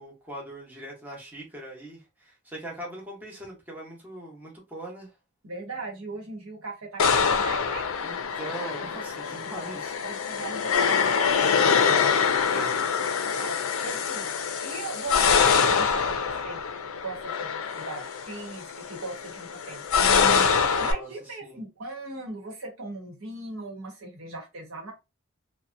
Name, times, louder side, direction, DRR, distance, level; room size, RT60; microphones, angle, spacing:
voice 1, 0.0-5.1 8.0-10.0 12.4-12.8 20.7-21.1 21.4-21.6, right 1 dB, 10° right, 0.8 m, -41 dB
voice 2, 5.4-7.9 10.0-11.4 12.5-12.7 13.2-16.6 17.0-24.9, right 3 dB, 80° right, 1.0 m, -39 dB
sound 1, 7.0-20.9, left 6 dB, 75° left, 0.4 m, -25 dB
2.7 x 2.1 x 2.5 m
head